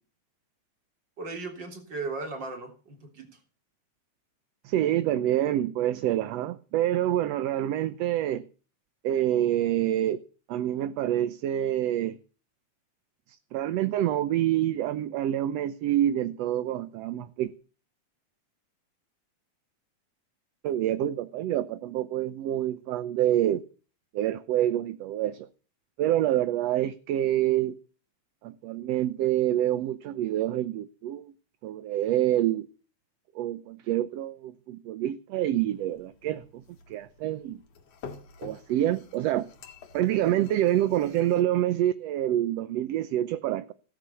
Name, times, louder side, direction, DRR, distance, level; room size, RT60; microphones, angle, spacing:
voice 1, 1.2-3.3, right 3 dB, 40° right, 3.8 m, -36 dB
voice 2, 4.6-8.4 9.0-10.2 10.5-12.2 13.5-17.5 20.6-23.6 24.1-25.5 26.0-27.8 28.4-31.3 31.6-32.7 33.3-36.4 36.9-37.6 38.4-39.5 39.9-43.7, right 12 dB, 70° right, 1.8 m, -27 dB
sound 1, 35.7-41.4, left 5 dB, 60° left, 3.2 m, -49 dB
17.0 x 9.4 x 7.0 m
omnidirectional pair, 3.3 m